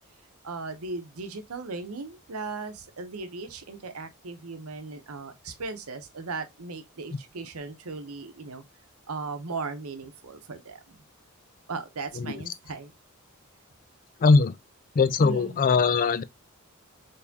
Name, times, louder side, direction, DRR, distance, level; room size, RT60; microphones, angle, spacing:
voice 1, 0.4-8.6 9.1-11.0 11.7-12.9 15.2-15.6, right 4 dB, 85° right, 0.8 m, -37 dB
voice 2, 14.2-14.6 14.9-16.2, left 4 dB, 40° left, 0.4 m, -21 dB
4.3 x 3.4 x 2.7 m
head